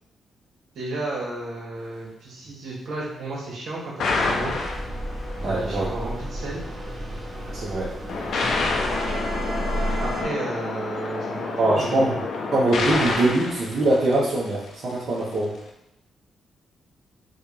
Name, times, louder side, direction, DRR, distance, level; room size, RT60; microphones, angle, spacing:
voice 1, 0.8-4.6 5.5-6.6 10.0-12.1, right 2 dB, 70° right, -5 dB, 1.7 m, -33 dB
sound 1, 4.0-5.4 8.1-14.6, left 3 dB, 70° left, 0.8 m, -28 dB
sound 2, 4.3-10.2, right 1 dB, 25° right, 0.9 m, -32 dB
voice 2, 5.4-5.8 7.5-7.9 11.6-12.1 12.5-15.5, right 2 dB, 50° right, -8 dB, 1.2 m, -22 dB
6.1 x 2.5 x 3.3 m, 0.83 s
cardioid pair, 135°, 0 cm